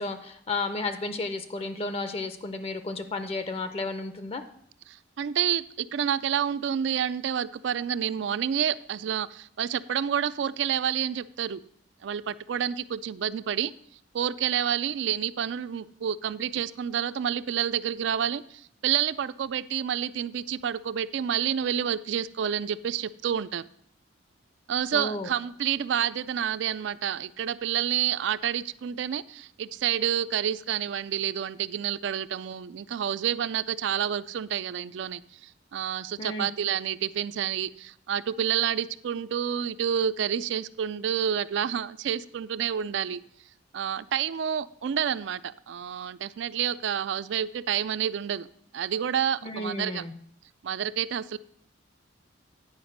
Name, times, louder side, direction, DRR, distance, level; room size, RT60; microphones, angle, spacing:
voice 1, 0.0-4.4 24.9-25.3 36.2-36.5 49.4-50.1, left 3 dB, 30° left, 0.5 m, -32 dB
voice 2, 4.9-11.6 12.0-13.7 14.1-23.6 24.7-43.2 43.7-48.5 48.7-50.0 50.6-51.4, right 9 dB, 65° right, 0.3 m, -29 dB
9.6 x 5.0 x 6.4 m
head